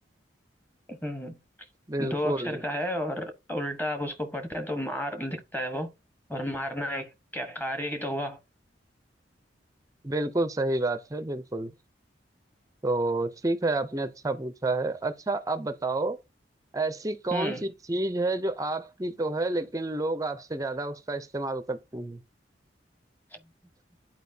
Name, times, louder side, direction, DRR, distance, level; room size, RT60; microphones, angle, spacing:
voice 1, 0.9-1.4 2.0-5.9 6.3-8.4 17.3-17.7, equal, 10° left, 1.1 m, -32 dB
voice 2, 1.9-2.6 10.0-11.7 12.8-16.2 16.7-22.2, right 2 dB, 20° right, 0.5 m, -29 dB
11.0 x 4.5 x 2.7 m
head